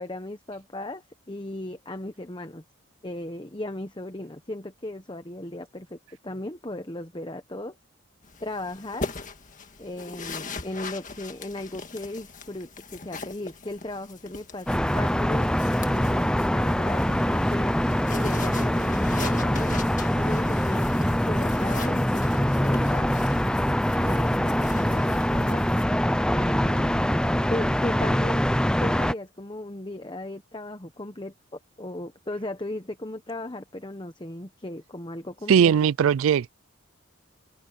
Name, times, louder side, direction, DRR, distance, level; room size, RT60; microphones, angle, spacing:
voice 1, 0.0-2.6 3.0-7.8 8.4-9.1 9.8-15.6 15.8-17.8 18.2-23.2 24.0-25.6 26.3-27.0 27.5-28.4 28.8-35.9, left 1 dB, 20° left, 1.0 m, -36 dB
sound 1, 8.2-25.9, left 4 dB, 35° left, 1.9 m, -41 dB
sound 2, 14.7-29.1, equal, 5° left, 0.5 m, -24 dB
voice 2, 35.5-36.5, right 8 dB, 80° right, 0.3 m, -19 dB
head